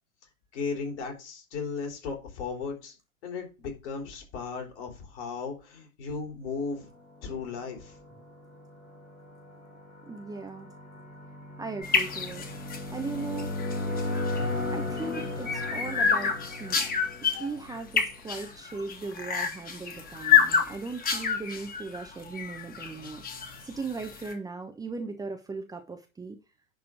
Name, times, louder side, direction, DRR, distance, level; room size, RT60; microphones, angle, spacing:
voice 1, 0.5-3.0 3.2-6.9 7.2-8.0, left 5 dB, 55° left, 3 dB, 4.1 m, -36 dB
sound 1, 7.3-18.1, left 2 dB, 85° left, 3.9 m, -36 dB
voice 2, 10.1-10.7 11.6-13.5 14.7-16.8 17.4-26.4, right 4 dB, 10° right, 5 dB, 1.0 m, -38 dB
sound 2, 11.8-24.3, left 7 dB, 20° left, 2.0 m, -29 dB
10.5 x 4.4 x 6.3 m, 0.29 s
figure-of-eight pair, 100°, 41 cm